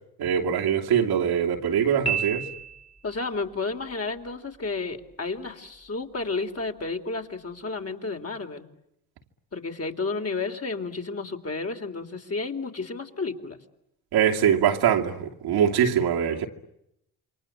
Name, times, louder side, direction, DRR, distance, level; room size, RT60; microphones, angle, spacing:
voice 1, 0.2-2.5 14.1-16.5, right 8 dB, 85° right, 2.8 m, -23 dB
Piano, 2.1-3.2, right 7 dB, 15° left, 2.5 m, -30 dB
voice 2, 3.0-8.7 9.5-13.6, left 3 dB, 40° left, 3.7 m, -32 dB
28.0 x 24.0 x 8.7 m
supercardioid pair, 60°, 38 cm